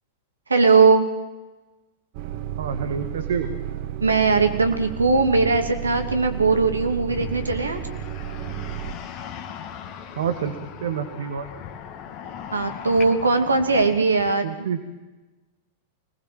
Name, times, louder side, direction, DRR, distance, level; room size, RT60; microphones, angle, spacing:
voice 1, 0.5-1.1 4.0-7.8 12.5-14.7, right 4 dB, 80° right, 6 dB, 2.7 m, -19 dB
sound 1, 2.1-8.9, right 11 dB, 50° right, 1.5 m, -32 dB
voice 2, 2.6-3.5 10.2-11.5 14.4-14.8, right 7 dB, 65° right, 7 dB, 2.1 m, -28 dB
sound 2, 7.1-14.3, left 8 dB, 40° left, 2.1 m, -38 dB
25.5 x 19.5 x 7.8 m, 1.1 s
figure-of-eight pair, 95°, 0 cm